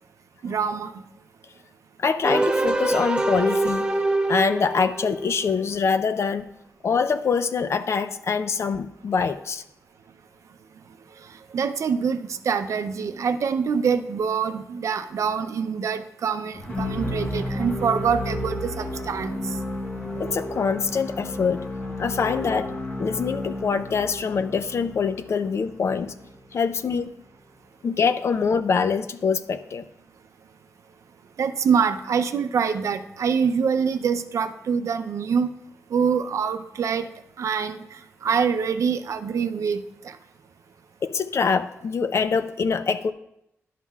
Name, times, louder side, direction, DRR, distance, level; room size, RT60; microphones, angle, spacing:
voice 1, 0.4-1.0 11.5-19.4 31.4-35.5 35.9-37.1 37.4-40.2, right 6 dB, 75° right, 10 dB, 0.5 m, -25 dB
voice 2, 2.0-3.9 4.3-6.5 6.8-9.6 20.2-21.7 22.0-22.7 23.0-26.1 26.5-27.1 27.8-29.9 41.0-43.1, left 5 dB, 55° left, 11 dB, 0.5 m, -24 dB
sound 1, 2.2-5.5, right 2 dB, 15° right, 0.6 m, -24 dB
sound 2, 16.5-26.6, left 1 dB, 30° left, 1.0 m, -32 dB
11.0 x 7.3 x 2.3 m, 0.81 s
wide cardioid pair, 110°, 5 cm